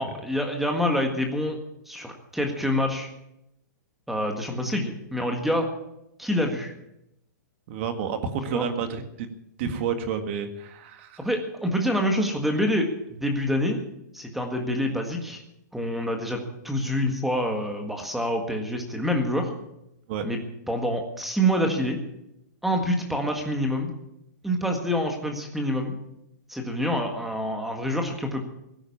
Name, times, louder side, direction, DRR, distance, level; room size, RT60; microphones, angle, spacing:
voice 1, 0.0-1.6 1.9-3.1 4.1-5.7 6.2-6.7 8.5-8.7 11.2-13.8 14.1-15.4 15.7-16.4 16.6-19.5 20.2-20.4 20.7-22.0 22.6-23.9 24.4-26.0 26.5-28.4, equal, ahead, 3 dB, 1.7 m, -26 dB
voice 2, 7.7-9.3 9.6-11.3 20.1-20.3, right 6 dB, 40° right, 7 dB, 1.8 m, -30 dB
18.0 x 10.0 x 7.2 m, 0.82 s
hypercardioid pair, 160°, 10 cm